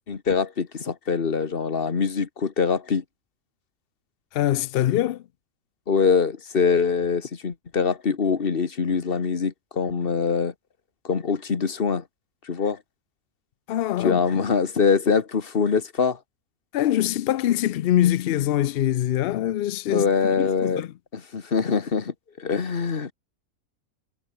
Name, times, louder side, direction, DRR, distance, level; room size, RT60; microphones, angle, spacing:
voice 1, 0.1-3.0 5.9-10.5 11.0-12.0 12.5-12.8 14.0-16.2 19.9-20.9 21.1-23.1, left 5 dB, 40° left, 1.5 m, -24 dB
voice 2, 4.3-5.2 13.7-14.4 16.7-20.9, left 12 dB, 75° left, 0.5 m, -24 dB
omnidirectional pair, 1.5 m